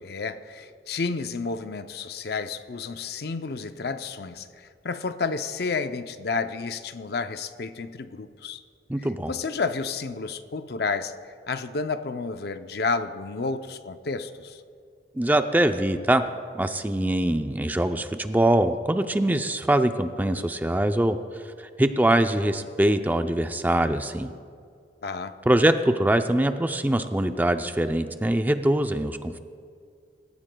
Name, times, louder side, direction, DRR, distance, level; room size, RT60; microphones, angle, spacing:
voice 1, 0.0-8.6 9.3-11.1 11.5-14.6 25.0-25.4, left 4 dB, 60° left, 0.6 m, -31 dB
voice 2, 8.9-9.3 15.1-16.2 16.5-21.2 21.6-24.3 25.5-29.4, right 1 dB, 10° right, 0.4 m, -23 dB
26.0 x 14.5 x 2.3 m
head